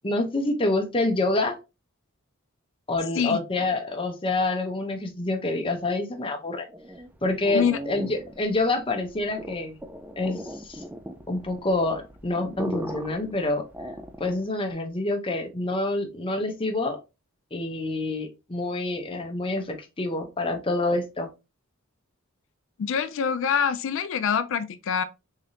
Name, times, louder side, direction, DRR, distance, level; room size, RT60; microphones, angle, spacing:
voice 1, 0.0-1.6 2.9-6.7 7.2-9.8 10.2-10.8 11.3-13.6 14.2-17.0 17.5-21.3, left 2 dB, 25° left, 0.7 m, -27 dB
sound 1, 6.7-14.5, equal, 10° right, 0.3 m, -38 dB
voice 2, 22.8-25.0, left 7 dB, 65° left, 0.4 m, -25 dB
3.7 x 3.4 x 2.7 m
head